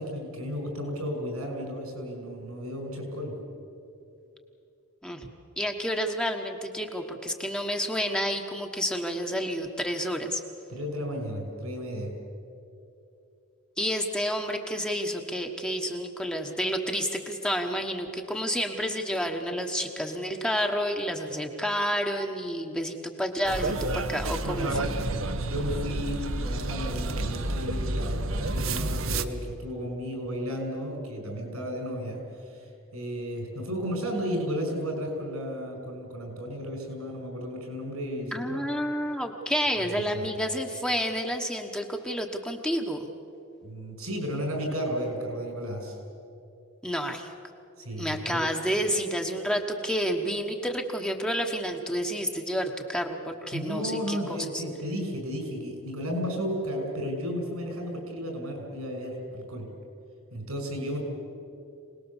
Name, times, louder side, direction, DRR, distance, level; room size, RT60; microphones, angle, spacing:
voice 1, 0.0-3.4 10.7-12.1 24.5-24.8 25.4-38.7 40.1-40.3 43.6-45.9 47.8-48.5 53.5-59.7 60.3-61.0, equal, 90° right, 2 dB, 6.2 m, -33 dB
voice 2, 5.6-10.4 13.8-24.7 38.3-43.1 46.8-47.3 48.0-54.6, equal, 5° left, 3 dB, 1.3 m, -30 dB
sound 1, 23.5-29.3, right 2 dB, 70° right, 1.0 m, -30 dB
26.0 x 19.5 x 7.3 m, 2.7 s
head